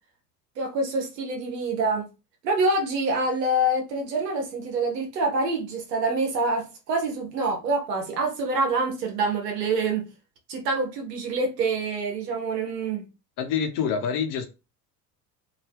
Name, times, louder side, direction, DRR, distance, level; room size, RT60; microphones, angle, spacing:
voice 1, 0.6-2.1 2.4-10.0 10.5-13.0, right 2 dB, 85° right, 1.0 m, -26 dB
voice 2, 13.4-14.5, left 7 dB, 55° left, 0.9 m, -26 dB
2.9 x 2.7 x 3.3 m
hypercardioid pair, 65°, 48 cm